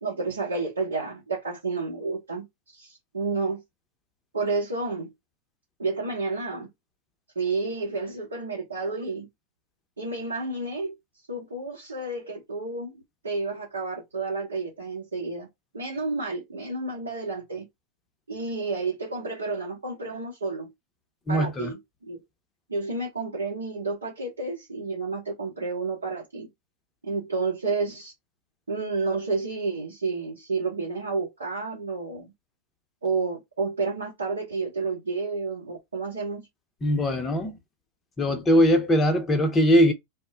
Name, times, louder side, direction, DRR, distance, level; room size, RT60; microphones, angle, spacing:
voice 1, 0.0-2.5 2.7-3.6 4.3-5.1 5.8-6.7 7.3-9.3 10.0-11.0 11.3-15.5 15.7-17.7 18.3-20.7 21.3-22.2 22.7-26.5 27.0-28.1 28.7-32.3 33.0-36.4, right 3 dB, 75° right, 0.8 m, -30 dB
voice 2, 21.3-21.7 36.8-37.5 38.2-39.9, equal, 20° left, 0.6 m, -21 dB
2.1 x 2.1 x 3.7 m
figure-of-eight pair, 90°, 0 cm